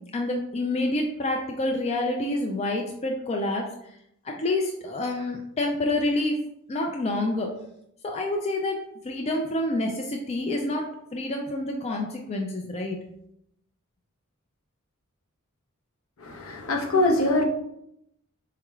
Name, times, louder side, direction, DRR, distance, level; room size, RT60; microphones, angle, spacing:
voice 1, 0.1-3.7 4.2-6.4 6.7-7.5 8.0-13.0, left 2 dB, 30° left, 1 dB, 0.3 m, -28 dB
voice 2, 16.2-17.4, left 2 dB, 70° left, 2 dB, 0.7 m, -23 dB
4.6 x 3.1 x 2.3 m, 0.77 s
head